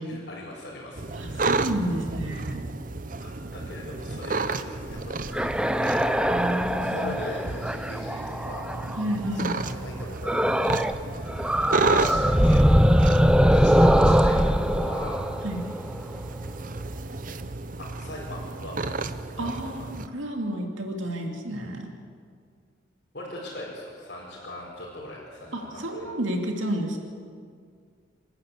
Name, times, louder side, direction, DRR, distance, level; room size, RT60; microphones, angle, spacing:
voice 1, 0.0-1.7 3.2-8.7 9.3-15.2 17.8-18.9 19.3-19.9 23.1-26.0, left 1 dB, 55° left, -6 dB, 5.0 m, -40 dB
sound 1, 1.0-20.1, right 3 dB, 40° right, 0.8 m, -32 dB
voice 2, 1.2-2.6 6.2-7.2 9.0-9.6 15.4-15.7 19.4-21.9 25.5-27.0, right 1 dB, 80° right, 2 dB, 2.7 m, -31 dB
sound 2, 5.2-9.1 10.2-11.0 11.3-16.2, equal, 5° right, 0.6 m, -22 dB
27.5 x 12.0 x 8.4 m, 2.1 s
head